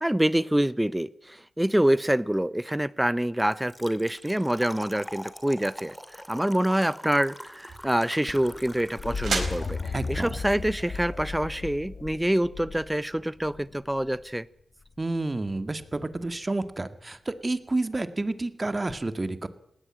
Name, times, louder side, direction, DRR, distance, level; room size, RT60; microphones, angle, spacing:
voice 1, 0.0-14.5, right 1 dB, 10° right, 0.8 m, -26 dB
Trickle dribble / Fill (with liquid), 3.5-11.0, equal, 5° left, 2.3 m, -45 dB
sound 1, 7.5-12.5, right 4 dB, 75° right, 4.4 m, -38 dB
sound 2, 8.3-14.2 15.8-16.3 18.9-19.0, left 4 dB, 70° left, 1.7 m, -36 dB
voice 2, 9.9-10.3 15.0-19.5, right 2 dB, 35° right, 1.9 m, -30 dB
19.5 x 17.0 x 8.8 m
cardioid pair, 40°, 0 cm